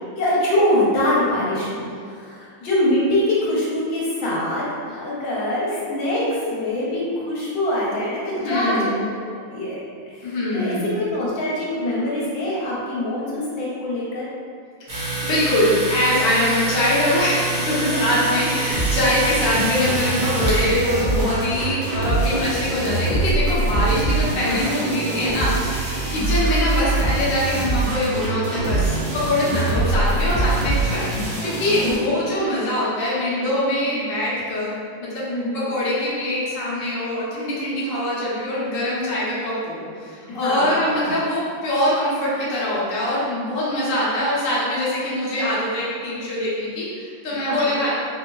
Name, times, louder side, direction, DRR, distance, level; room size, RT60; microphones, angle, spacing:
voice 1, 0.2-9.1 9.5-14.3 17.9-18.0 24.5-24.8 26.1-26.5 29.8-30.0 31.8-32.3 35.3-35.7 40.3-41.1 47.4-47.8, left 1 dB, 75° left, -6 dB, 1.4 m, -24 dB
voice 2, 8.4-8.9 10.2-10.8 14.9-34.7 35.0-35.2 35.5-47.9, left 1 dB, 60° left, -8 dB, 0.9 m, -23 dB
Domestic sounds home sounds, 14.9-20.8, right 2 dB, 60° right, 0.9 m, -27 dB
sound 1, 18.7-32.0, right 2 dB, 75° right, 1.6 m, -23 dB
4.3 x 2.0 x 2.2 m, 2.2 s
omnidirectional pair, 2.1 m